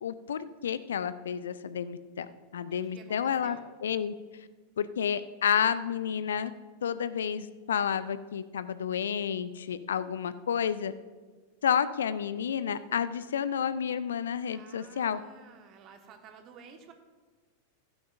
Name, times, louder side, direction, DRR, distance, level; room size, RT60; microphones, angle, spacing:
voice 1, 0.0-2.3 2.5-4.1 4.8-6.5 6.8-10.9 11.6-15.2, left 8 dB, 65° left, 15 dB, 0.4 m, -30 dB
voice 2, 2.7-3.7 14.5-16.9, right 6 dB, 35° right, 5 dB, 1.3 m, -52 dB
15.0 x 12.0 x 2.5 m, 1.3 s
figure-of-eight pair, 90°, 0 cm